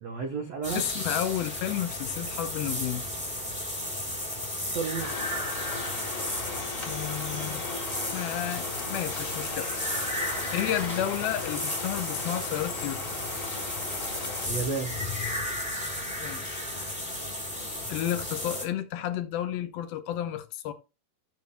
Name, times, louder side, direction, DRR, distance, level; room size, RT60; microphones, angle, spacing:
voice 1, 0.0-0.8 4.7-5.1 10.4-11.0 14.5-14.9, right 5 dB, 90° right, 1.4 m, -33 dB
sound 1, 0.6-18.6, left 1 dB, ahead, 1.9 m, -34 dB
voice 2, 0.7-3.1 6.9-7.6 8.1-9.7 10.2-13.2 16.2-16.6 17.9-20.7, left 12 dB, 75° left, 2.4 m, -32 dB
sound 2, 5.0-14.5, left 5 dB, 35° left, 1.4 m, -38 dB
13.0 x 7.5 x 2.2 m
omnidirectional pair, 4.6 m